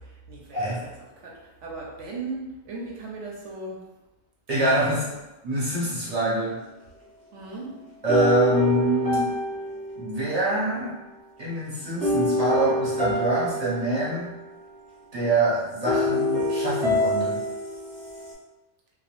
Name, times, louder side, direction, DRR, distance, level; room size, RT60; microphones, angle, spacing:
voice 1, 0.0-3.8 4.8-5.2 7.3-7.8, right 3 dB, 70° right, -2 dB, 0.9 m, -38 dB
voice 2, 0.5-0.8 4.5-5.1 5.4-6.6 8.0-9.3 10.0-10.9 11.4-14.4 15.1-17.4, right 1 dB, 40° right, -7 dB, 0.6 m, -25 dB
sound 1, 8.1-10.6 12.0-14.5 15.8-18.3, left 1 dB, 10° left, 0.5 m, -26 dB
2.2 x 2.0 x 2.9 m, 1.0 s
omnidirectional pair, 1.3 m